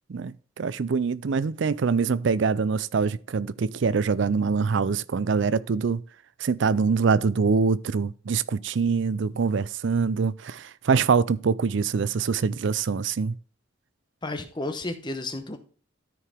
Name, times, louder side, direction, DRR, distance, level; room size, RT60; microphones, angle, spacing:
voice 1, 0.1-6.0 6.4-13.4, right 5 dB, 65° right, 0.4 m, -24 dB
voice 2, 14.2-15.6, left 2 dB, 20° left, 0.9 m, -32 dB
13.0 x 4.8 x 3.5 m
head